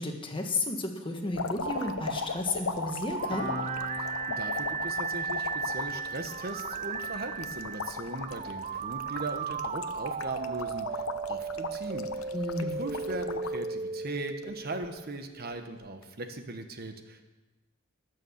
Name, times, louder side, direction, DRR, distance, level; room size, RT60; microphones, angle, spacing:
voice 1, 0.0-3.5 12.3-12.8, left 2 dB, 25° left, 3 dB, 1.5 m, -33 dB
sound 1, 1.3-13.7 14.1-14.9 15.9-16.0, left 5 dB, 90° left, 0.8 m, -38 dB
sound 2, 1.6-15.4, right 5 dB, 30° right, 0.3 m, -36 dB
Piano, 3.3-10.3 10.6-10.8, left 2 dB, 70° left, 2.1 m, -45 dB
voice 2, 4.0-12.3 12.6-17.2, right 2 dB, 50° right, 6 dB, 1.1 m, -39 dB
19.5 x 6.7 x 7.2 m, 1.2 s
head